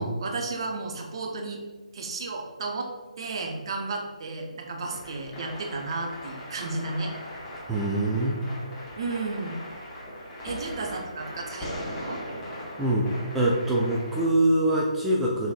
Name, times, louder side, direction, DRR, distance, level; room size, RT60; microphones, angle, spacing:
voice 1, 0.0-1.6 1.9-2.9 3.2-7.1 9.0-9.6 10.4-12.2, right 3 dB, 45° right, 1 dB, 0.7 m, -33 dB
sound 1, 4.9-14.2, equal, 15° left, 1.1 m, -39 dB
voice 2, 7.7-8.4 12.8-13.1 13.3-15.5, right 1 dB, 5° right, -5 dB, 0.4 m, -24 dB
5.6 x 3.9 x 2.3 m, 1.3 s
figure-of-eight pair, 145°, 4 cm